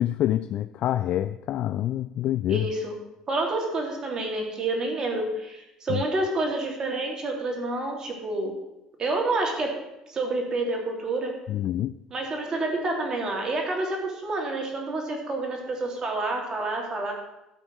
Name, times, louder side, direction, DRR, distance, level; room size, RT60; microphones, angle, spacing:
voice 1, 0.0-2.7 5.9-6.0 11.5-12.0, left 12 dB, 60° left, 12 dB, 0.4 m, -26 dB
voice 2, 2.5-2.9 3.3-8.5 9.0-9.7 10.1-11.3 12.1-17.1, right 2 dB, 35° right, 1 dB, 3.2 m, -28 dB
13.0 x 4.5 x 7.7 m, 0.90 s
supercardioid pair, 100°, 2 cm